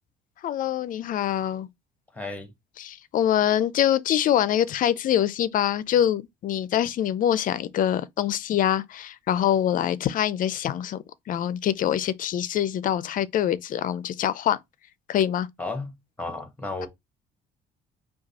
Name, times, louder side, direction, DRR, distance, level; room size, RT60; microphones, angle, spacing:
voice 1, 0.4-1.7 2.8-11.0 11.3-14.6 15.1-15.5, left 10 dB, 55° left, 0.5 m, -24 dB
voice 2, 2.1-2.5 15.6-16.9, left 3 dB, 10° left, 1.4 m, -33 dB
5.0 x 2.4 x 4.1 m
cardioid pair, 110°, 17 cm